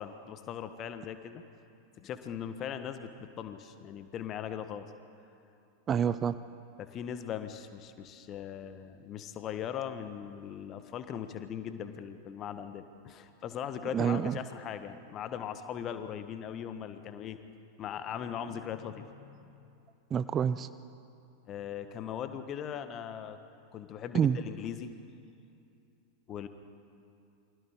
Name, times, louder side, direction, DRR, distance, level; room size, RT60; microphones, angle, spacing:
voice 1, 0.0-1.4 2.0-4.9 6.8-17.4 17.8-19.8 21.5-23.4 23.7-24.9 26.3-26.5, left 9 dB, 30° left, 9 dB, 1.4 m, -39 dB
voice 2, 5.9-6.4 13.9-14.3 20.1-20.7 24.1-24.4, right 8 dB, 25° right, 14 dB, 0.5 m, -27 dB
28.5 x 24.5 x 3.8 m, 2.6 s
figure-of-eight pair, 90°, 0 cm